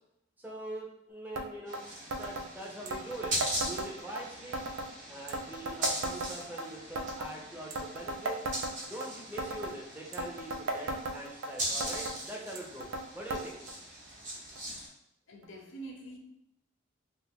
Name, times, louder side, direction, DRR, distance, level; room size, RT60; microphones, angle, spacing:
voice 1, 0.4-1.8 2.1-3.3 3.6-4.7 5.1-8.4 8.9-12.9 13.1-13.6, right 1 dB, 10° right, -3 dB, 0.6 m, -43 dB
sound 1, 1.4-1.5 1.7-1.8 2.1-2.5 2.9-4.2 4.5-4.9 5.3-6.7 7.0-7.3 7.7-9.1 9.4-9.8 10.1-11.5 11.8-12.2 12.6-13.0 13.3-13.4 13.7-13.8 14.6-14.7 15.4-15.5, right 2 dB, 90° right, 0.4 m, -36 dB
sound 2, 1.7-14.9, right 1 dB, 40° right, 0.8 m, -40 dB
voice 2, 15.3-16.2, right 2 dB, 70° left, 1 dB, 0.6 m, -45 dB
2.5 x 2.5 x 3.4 m, 0.77 s
head